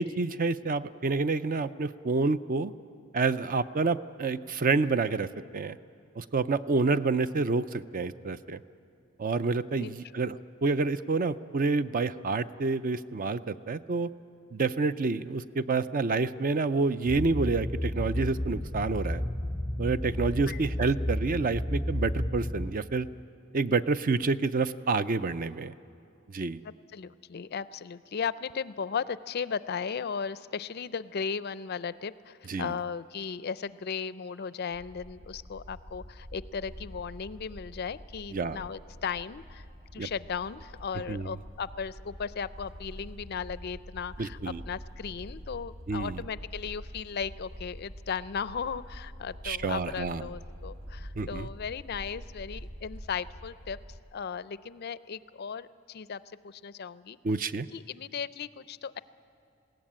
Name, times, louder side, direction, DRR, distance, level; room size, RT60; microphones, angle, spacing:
voice 1, 0.0-2.7 3.1-5.8 6.2-8.6 9.2-10.4 10.6-14.1 14.5-19.2 19.8-23.1 23.5-25.7 26.3-26.6 32.5-32.7 38.3-38.6 40.0-40.1 41.1-41.3 44.2-44.6 45.9-46.2 49.4-50.3 51.2-51.5 57.2-57.7, right 4 dB, 40° right, 14 dB, 0.4 m, -28 dB
voice 2, 9.8-10.2 20.5-20.6 26.6-39.6 39.9-53.8 54.1-57.2 57.7-59.0, left 6 dB, 50° left, 16 dB, 0.4 m, -36 dB
sound 1, 17.1-22.7, left 1 dB, 5° left, 0.6 m, -32 dB
sound 2, 34.7-54.0, equal, 60° right, 1.3 m, -46 dB
21.0 x 16.5 x 8.8 m, 2.7 s
head